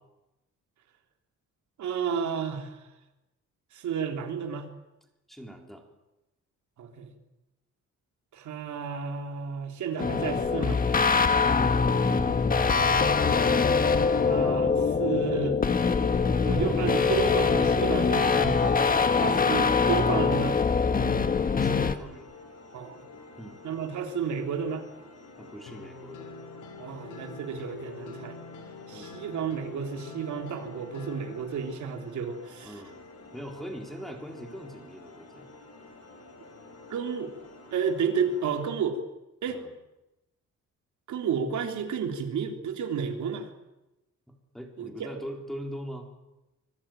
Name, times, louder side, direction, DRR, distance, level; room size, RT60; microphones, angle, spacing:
voice 1, 1.8-2.8 3.7-4.7 6.8-7.1 8.3-10.8 12.9-13.2 14.2-15.6 16.5-18.8 19.2-20.6 22.7-23.0 23.6-24.8 26.8-28.4 28.9-32.7 36.9-37.3 37.7-39.0 39.4-39.6 41.1-43.5 44.8-45.1, right 6 dB, 70° right, 4 dB, 3.6 m, -31 dB
voice 2, 5.3-5.8 11.5-12.4 19.0-19.4 21.3-22.3 23.4-23.6 25.4-26.3 28.9-29.2 32.6-32.9 33.3-35.5 39.5-39.7 44.3-46.1, equal, ahead, 1 dB, 4.0 m, -41 dB
sound 1, 10.0-22.0, left 5 dB, 30° left, 1.5 m, -23 dB
sound 2, 21.8-38.6, left 3 dB, 55° left, 6.8 m, -49 dB
sound 3, 25.7-31.4, left 4 dB, 80° left, 4.2 m, -45 dB
25.5 x 21.5 x 9.2 m, 0.97 s
cardioid pair, 165°, 31 cm